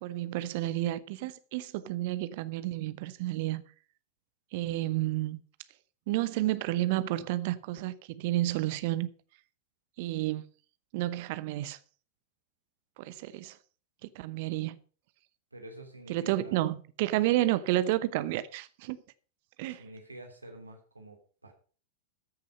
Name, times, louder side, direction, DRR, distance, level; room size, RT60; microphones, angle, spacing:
voice 1, 0.0-3.6 4.5-5.4 6.1-9.1 10.0-10.4 10.9-11.8 13.0-13.6 14.0-14.8 16.1-19.0 19.6-19.8, right 15 dB, 50° right, 0.8 m, -31 dB
voice 2, 15.5-16.7 19.7-21.5, right 1 dB, 80° right, 2.9 m, -48 dB
14.0 x 6.7 x 5.5 m
figure-of-eight pair, 90°, 0 cm